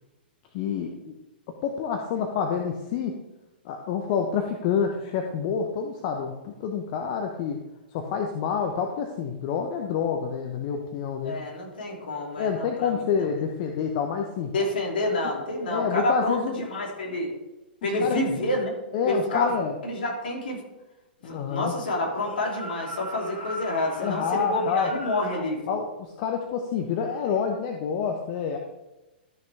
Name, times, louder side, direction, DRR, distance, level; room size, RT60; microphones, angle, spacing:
voice 1, 0.5-1.1 1.6-3.2 3.6-7.6 7.9-11.4 12.4-14.5 15.7-16.7 18.0-18.2 18.9-19.7 21.3-21.7 24.0-24.9 25.7-28.6, left 6 dB, 45° left, 3 dB, 1.0 m, -28 dB
voice 2, 11.2-13.0 14.5-17.3 17.8-18.7 19.0-19.5 19.8-20.6 21.2-25.6, left 1 dB, 65° left, -1 dB, 2.9 m, -28 dB
sound 1, 22.1-25.5, equal, 90° left, 1.8 m, -39 dB
13.0 x 6.3 x 3.4 m, 1.0 s
figure-of-eight pair, 105°, 6 cm